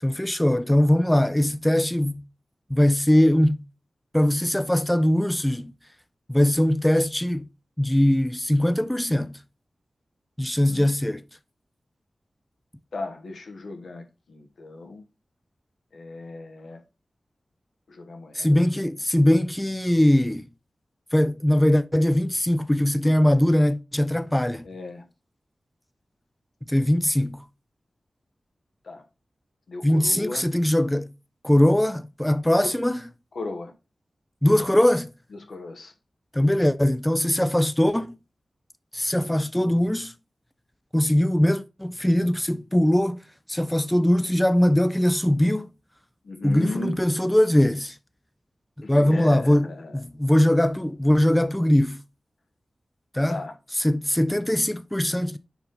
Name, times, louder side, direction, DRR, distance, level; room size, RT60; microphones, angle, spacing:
voice 1, 0.0-2.2 2.7-3.6 4.1-5.7 6.3-7.5 7.8-9.4 10.4-11.2 18.3-20.5 21.1-24.7 26.7-27.4 29.8-31.1 31.4-33.1 34.4-35.1 36.3-38.1 38.9-40.1 40.9-45.7 46.4-48.0 48.8-52.0 53.1-53.4 53.7-55.4, left 1 dB, 10° left, 0.4 m, -21 dB
voice 2, 12.9-15.0 15.9-16.8 17.9-18.5 24.6-25.0 28.8-29.0 29.7-30.4 32.6-32.7 33.3-33.7 35.5-35.9 46.2-47.0 48.8-50.0 53.3-53.5, left 2 dB, 85° left, 1.0 m, -36 dB
5.3 x 4.6 x 3.8 m
wide cardioid pair, 70°, 0 cm